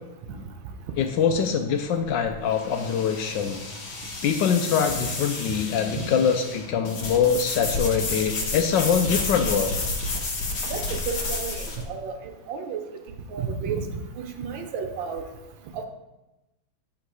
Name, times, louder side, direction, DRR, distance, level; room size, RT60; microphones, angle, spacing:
voice 1, 1.0-3.6 4.2-9.7, left 7 dB, 75° left, 6 dB, 1.1 m, -24 dB
sound 1, 1.5-11.8, left 3 dB, 60° left, 1.6 m, -31 dB
voice 2, 10.7-12.8 13.3-13.8 14.2-15.2 15.7-15.8, right 6 dB, 75° right, 5 dB, 1.4 m, -32 dB
8.5 x 3.8 x 4.7 m, 1.0 s
omnidirectional pair, 2.2 m